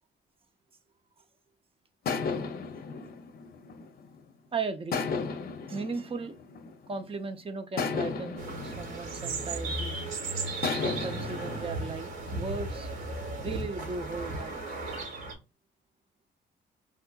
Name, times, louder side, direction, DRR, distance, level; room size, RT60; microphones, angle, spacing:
sound 1, 2.1-4.3 4.9-7.1 7.8-10.0 10.6-11.7, left 5 dB, 50° left, 0.6 m, -34 dB
voice 1, 4.5-5.0 5.7-6.3 6.9-10.0 10.6-12.9 13.4-14.6, right 4 dB, 30° right, 0.5 m, -37 dB
sound 2, 8.4-15.3, right 2 dB, 75° right, 1.4 m, -35 dB
3.7 x 2.5 x 2.3 m
cardioid pair, 90°, 20 cm